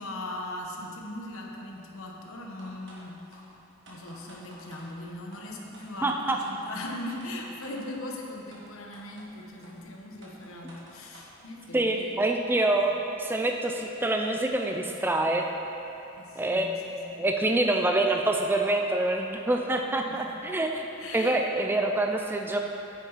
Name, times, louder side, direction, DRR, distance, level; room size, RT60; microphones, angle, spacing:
voice 1, 0.0-3.6 3.9-12.2 12.8-12.9 16.2-17.3 20.1-20.4 21.0-21.4, left 1 dB, 70° left, 0 dB, 1.0 m, -40 dB
sound 1, 2.6-3.0 3.3-3.4 3.9-4.9 5.3-5.4 5.7-6.1 6.4-6.5 6.9-7.9 8.5-8.6 8.9-9.3 9.6-9.7 10.2-11.3, right 2 dB, 55° right, 1.6 m, -51 dB
voice 2, 6.0-6.4 11.7-15.5 16.4-20.9 21.1-22.6, right 2 dB, 10° right, 2 dB, 0.3 m, -26 dB
9.0 x 6.9 x 4.0 m, 3.0 s
head